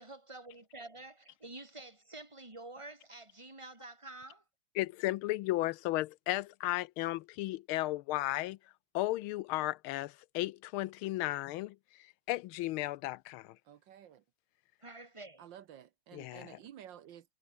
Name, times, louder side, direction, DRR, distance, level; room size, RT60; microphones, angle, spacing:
voice 1, 0.0-4.4 14.8-15.5, right 2 dB, 15° right, 3.4 m, -49 dB
voice 2, 4.8-8.6 8.9-13.6 16.1-16.6, left 17 dB, 80° left, 1.4 m, -35 dB
voice 3, 13.6-14.2 15.4-17.3, right 10 dB, 65° right, 1.5 m, -52 dB
omnidirectional pair, 2.3 m